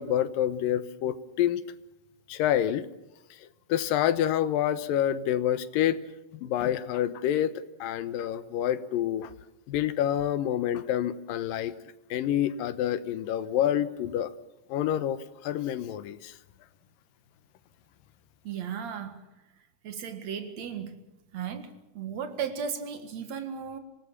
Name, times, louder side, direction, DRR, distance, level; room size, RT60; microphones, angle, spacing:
voice 1, 0.0-1.6 2.3-2.9 3.7-6.0 6.4-7.5 7.8-9.3 9.7-11.8 12.1-14.3 14.7-16.3, left 11 dB, 85° left, 2.7 m, -27 dB
voice 2, 18.4-19.2 19.8-21.0 21.3-23.8, right 7 dB, 55° right, 2.8 m, -35 dB
26.5 x 18.5 x 7.2 m
omnidirectional pair, 3.9 m